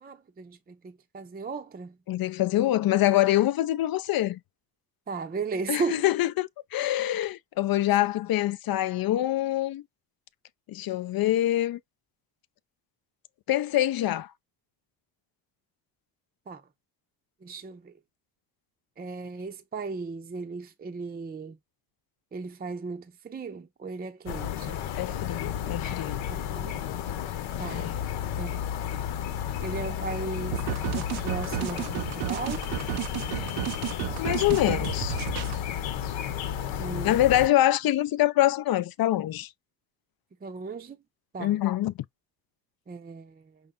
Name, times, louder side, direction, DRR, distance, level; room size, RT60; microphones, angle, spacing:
voice 1, 0.0-2.0 5.1-6.1 16.5-16.6 17.4-17.9 19.0-21.6 22.3-24.8 26.3-26.8 27.6-27.9 28.4-28.8 29.6-32.7 36.7-37.2 40.4-41.0 41.3-41.6 42.9-43.6, right 4 dB, 20° right, 0.6 m, -36 dB
voice 2, 2.1-4.4 5.7-9.8 10.7-11.8 13.5-14.3 24.9-26.2 27.7-28.0 34.2-35.2 36.7-39.5 41.4-41.9, left 14 dB, 50° left, 0.5 m, -25 dB
sound 1, 24.3-37.5, left 10 dB, 70° left, 1.0 m, -32 dB
sound 2, 30.5-35.6, right 18 dB, 75° right, 0.6 m, -33 dB
5.5 x 2.1 x 3.7 m
supercardioid pair, 80°, 48 cm